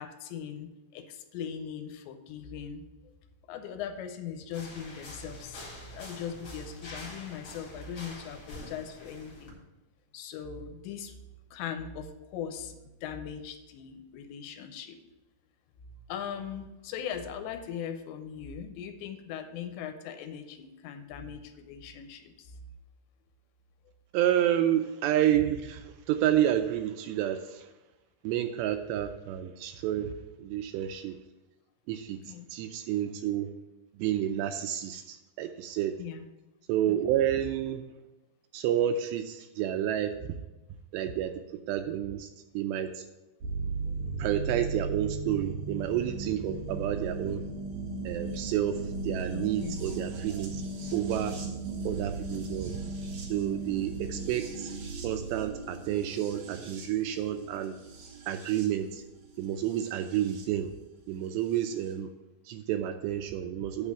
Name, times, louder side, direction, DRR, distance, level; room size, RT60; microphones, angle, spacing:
voice 1, 0.0-2.8 3.5-5.7 5.9-9.6 10.1-11.2 11.5-15.0 16.1-22.5 32.2-32.5 36.0-36.3 36.9-37.2 49.3-49.8 51.4-51.5, left 8 dB, 80° left, 7 dB, 2.9 m, -40 dB
sound 1, 4.5-9.5, left 2 dB, 45° left, 1.9 m, -46 dB
voice 2, 24.1-27.7 28.2-30.1 30.4-31.2 31.9-32.2 32.5-33.5 33.9-36.0 36.7-37.8 38.5-40.1 40.9-41.4 41.7-42.3 42.5-43.1 44.2-47.4 48.0-50.6 50.9-51.4 51.9-52.7 53.3-54.7 55.0-57.8 58.3-59.0 59.4-60.7 61.1-62.1 62.5-63.9, right 11 dB, 85° right, 7 dB, 2.5 m, -30 dB
sound 2, 43.4-60.4 61.6-61.7, right 3 dB, 65° right, 2.0 m, -37 dB
8.8 x 4.2 x 7.2 m, 1.0 s
omnidirectional pair, 5.2 m